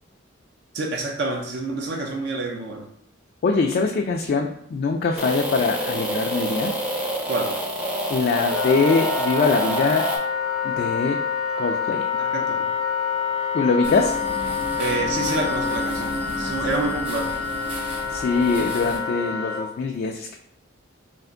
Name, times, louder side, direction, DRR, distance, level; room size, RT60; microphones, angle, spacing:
voice 1, 0.7-2.9 7.3-7.6 12.1-12.7 14.8-17.3, right 2 dB, 55° right, 1 dB, 0.6 m, -28 dB
voice 2, 3.4-6.7 8.1-10.1 10.6-11.2 11.6-12.0 13.5-14.2 18.1-20.4, left 4 dB, 50° left, 2 dB, 0.3 m, -23 dB
sound 1, 5.2-10.2, equal, 5° right, 0.6 m, -27 dB
Wind instrument woodwind instrument, 8.4-19.6, left 6 dB, 80° left, 0.9 m, -27 dB
sound 2, 13.8-19.0, equal, 30° right, 0.9 m, -33 dB
3.4 x 2.5 x 3.7 m, 0.69 s
head